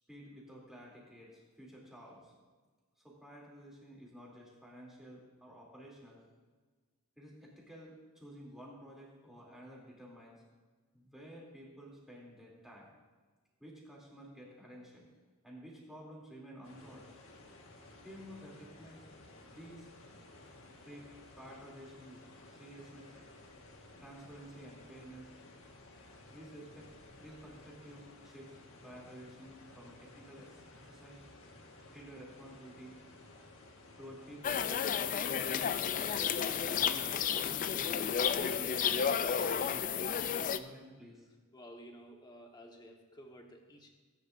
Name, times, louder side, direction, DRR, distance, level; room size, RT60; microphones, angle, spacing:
voice 1, 0.1-2.3 3.0-6.2 7.2-10.4 10.9-12.9 13.6-15.1 15.4-17.1 18.0-19.0 19.5-19.9 20.8-21.1 21.4-22.2 22.5-23.1 24.0-25.3 26.3-26.9 27.2-30.5 30.8-31.2 31.9-33.0 34.0-34.7 35.2-41.3, equal, ahead, -5 dB, 2.9 m, -52 dB
sound 1, 16.6-34.5, left 2 dB, 65° left, 1.6 m, -56 dB
sound 2, 34.4-40.6, left 7 dB, 35° left, 0.4 m, -32 dB
voice 2, 41.5-43.9, equal, 20° left, 2 dB, 1.3 m, -53 dB
18.5 x 10.0 x 2.6 m, 1.4 s
head